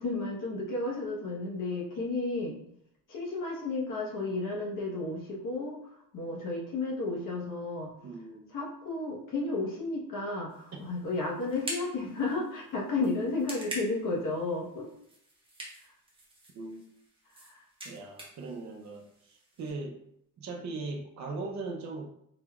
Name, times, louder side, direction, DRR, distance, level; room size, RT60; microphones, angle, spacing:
voice 1, 0.0-2.6 3.1-5.8 6.1-7.9 8.5-14.9 17.3-17.6, left 3 dB, 60° left, -3 dB, 1.2 m, -33 dB
voice 2, 8.0-8.4 10.7-10.8 16.5-16.8 17.8-20.0 20.4-22.1, right 3 dB, 50° right, 0 dB, 0.7 m, -39 dB
sound 1, 10.5-19.7, right 1 dB, 15° right, 0.9 m, -46 dB
4.0 x 3.3 x 2.3 m, 0.75 s
cardioid pair, 140°, 36 cm